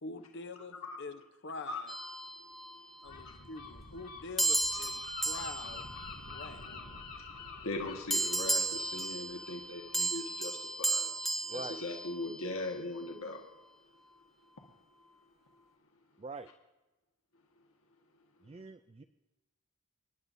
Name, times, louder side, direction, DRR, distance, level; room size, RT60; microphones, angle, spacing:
voice 1, 0.0-1.9 3.0-5.9 6.3-6.7, left 3 dB, 55° left, 9 dB, 0.8 m, -45 dB
voice 2, 1.7-2.1 3.2-3.3 7.6-11.1 11.5-13.4, left 2 dB, 70° left, 1 dB, 1.4 m, -40 dB
sound 1, 1.9-3.1 4.4-7.1 8.1-12.6, right 2 dB, ahead, 0.9 m, -35 dB
Gull seagull, 3.0-10.6, left 4 dB, 85° left, 2.4 m, -48 dB
voice 3, 18.4-19.0, right 3 dB, 25° right, 10 dB, 0.3 m, -43 dB
26.0 x 11.0 x 2.7 m, 1.1 s
head